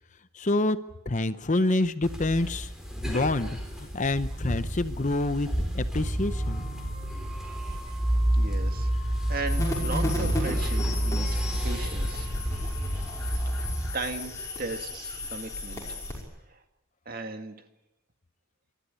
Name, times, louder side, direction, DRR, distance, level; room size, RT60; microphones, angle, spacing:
voice 1, 0.3-0.8 1.1-2.7 3.1-6.7, left 2 dB, 35° left, 12 dB, 0.7 m, -27 dB
sound 1, 2.0-13.9, right 1 dB, 5° right, 4.0 m, -29 dB
voice 2, 7.7-8.0 8.3-12.3 13.5-14.3 14.6-16.0 16.5-16.6 17.1-17.6, right 3 dB, 45° right, 6 dB, 2.1 m, -37 dB
sound 2, 9.5-16.2, left 1 dB, 15° left, 5.8 m, -33 dB
28.5 x 13.0 x 9.6 m, 0.91 s
head